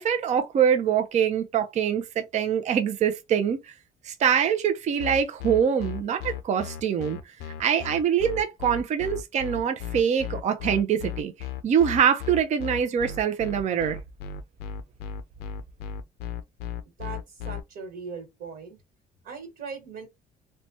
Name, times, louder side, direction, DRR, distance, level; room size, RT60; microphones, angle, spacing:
voice 1, 0.0-3.7 4.0-7.2 7.6-11.3 11.6-14.0, right 8 dB, 45° right, 0.5 m, -24 dB
sound 1, 5.0-17.6, left 7 dB, 80° left, 0.5 m, -35 dB
voice 2, 17.0-18.8 19.2-20.1, right 5 dB, 65° right, 1.5 m, -39 dB
3.0 x 2.2 x 2.7 m
cardioid pair, 110°, 17 cm